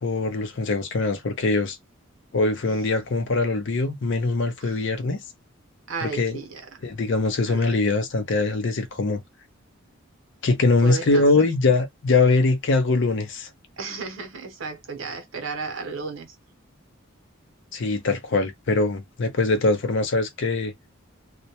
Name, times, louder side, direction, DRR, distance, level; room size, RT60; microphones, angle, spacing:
voice 1, 0.0-1.8 2.3-5.2 6.0-6.4 6.8-9.2 10.4-13.5 17.7-20.7, left 3 dB, 60° left, 0.5 m, -22 dB
voice 2, 5.9-6.7 7.5-7.7 10.8-11.3 13.8-16.3, right 5 dB, 70° right, 0.7 m, -34 dB
2.2 x 2.1 x 2.7 m
head